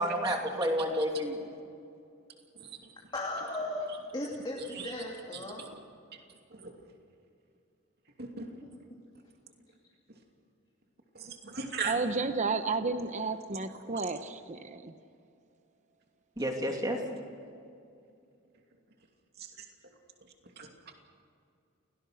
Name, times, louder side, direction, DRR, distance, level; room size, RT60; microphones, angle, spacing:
voice 1, 0.0-1.5 16.4-17.0, equal, 20° right, 2 dB, 2.7 m, -30 dB
voice 2, 3.1-3.9 4.1-5.7, left 1 dB, 20° left, -3 dB, 2.7 m, -36 dB
voice 3, 11.1-12.0 13.9-14.0 20.6-20.7, right 5 dB, 50° right, 3 dB, 2.7 m, -38 dB
voice 4, 11.8-14.9, right 4 dB, 35° right, 9 dB, 0.9 m, -32 dB
29.0 x 18.5 x 6.4 m, 2.5 s
head